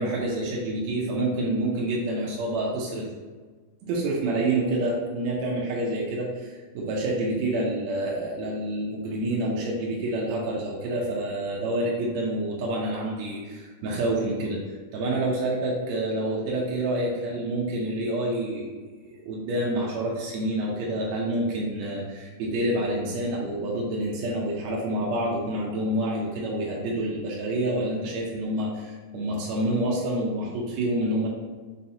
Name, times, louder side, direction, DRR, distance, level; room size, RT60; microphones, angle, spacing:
voice 1, 0.0-3.1 3.8-18.7 19.2-31.3, right 1 dB, 75° right, -4 dB, 1.8 m, -28 dB
5.4 x 3.2 x 2.7 m, 1.4 s
omnidirectional pair, 3.5 m